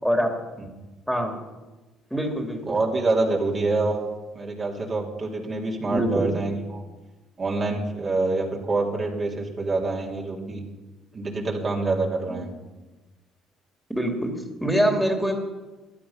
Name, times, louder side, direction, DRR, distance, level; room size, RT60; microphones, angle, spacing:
voice 1, 2.1-2.7 5.8-6.3 12.3-12.4 13.9-15.3, equal, ahead, 3 dB, 2.9 m, -24 dB
voice 2, 2.7-4.1 4.3-6.8 7.4-10.6 11.1-12.5, right 3 dB, 40° right, -1 dB, 3.2 m, -26 dB
15.0 x 11.5 x 5.8 m, 1.2 s
hypercardioid pair, 50°, 0 cm